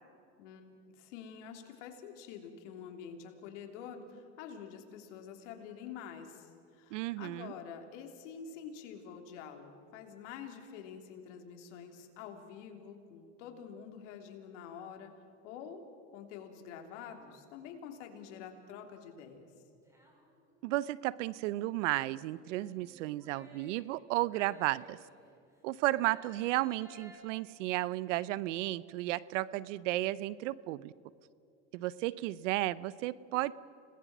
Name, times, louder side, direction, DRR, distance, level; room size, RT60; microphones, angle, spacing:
voice 1, 0.9-15.1 15.4-15.8 16.1-19.5, left 7 dB, 80° left, 4 dB, 3.3 m, -47 dB
voice 2, 6.9-7.5 20.6-25.0 25.6-30.9 31.7-33.5, right 17 dB, 80° right, 19 dB, 0.8 m, -33 dB
sound 1, 19.8-20.7 22.5-25.4 25.8-27.2, equal, 10° right, 6.0 m, -57 dB
30.0 x 19.5 x 6.1 m, 2.5 s
supercardioid pair, 100°, 36 cm